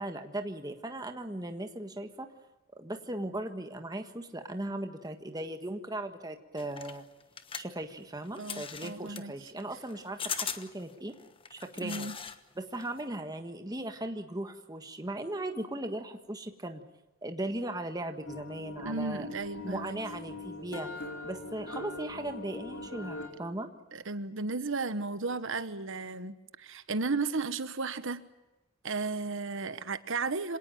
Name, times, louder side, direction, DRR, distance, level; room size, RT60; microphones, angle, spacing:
voice 1, 0.0-2.3 2.8-7.0 7.5-11.1 11.5-12.1 12.6-16.8 17.2-19.3 19.6-20.9 21.2-23.7, right 1 dB, 15° right, 6 dB, 1.5 m, -38 dB
sound 1, 6.6-12.4 12.7-13.1, left 7 dB, 25° left, 1.2 m, -40 dB
voice 2, 8.4-9.3 11.8-12.2 18.8-20.0 23.9-28.2 28.8-30.6, right 3 dB, 60° right, 12 dB, 1.2 m, -34 dB
sound 2, 18.3-23.3, left 2 dB, 80° left, 4.7 m, -42 dB
26.0 x 18.5 x 9.0 m, 1.0 s
head